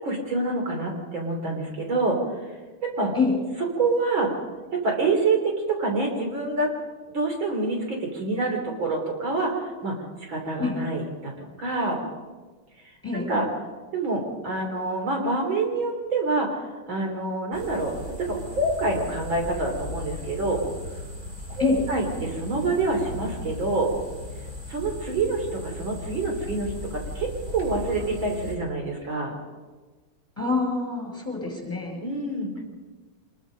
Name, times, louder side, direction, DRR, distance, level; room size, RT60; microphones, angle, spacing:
voice 1, 0.0-2.2 2.8-3.1 3.8-4.3 4.8-6.7 7.1-10.0 10.3-12.0 13.1-13.4 13.9-16.6 16.9-20.6 21.5-23.9 24.7-29.4 32.0-32.6, right 3 dB, 70° right, 2 dB, 4.2 m, -27 dB
sound 1, 17.5-28.5, left 2 dB, 35° right, 5.5 m, -37 dB
voice 2, 30.4-32.0, left 4 dB, 5° left, 1 dB, 5.9 m, -25 dB
25.5 x 21.5 x 5.2 m, 1.3 s
omnidirectional pair, 2.2 m